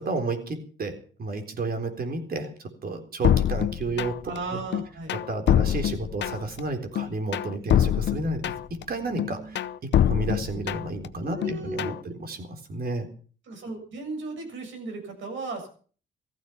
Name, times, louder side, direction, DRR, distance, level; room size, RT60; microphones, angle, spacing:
voice 1, 0.0-4.6 5.1-8.4 8.9-13.1, right 3 dB, 50° right, 6 dB, 3.9 m, -32 dB
sound 1, 3.2-4.4 4.7-6.6 7.0-8.8 9.2-11.1 11.4-12.0, left 10 dB, 65° left, 0.8 m, -24 dB
voice 2, 4.2-5.1 8.8-9.6 11.2-12.0 13.5-15.7, right 3 dB, 70° right, 4 dB, 7.4 m, -36 dB
15.5 x 15.0 x 5.9 m, 0.43 s
cardioid pair, 90°, 20 cm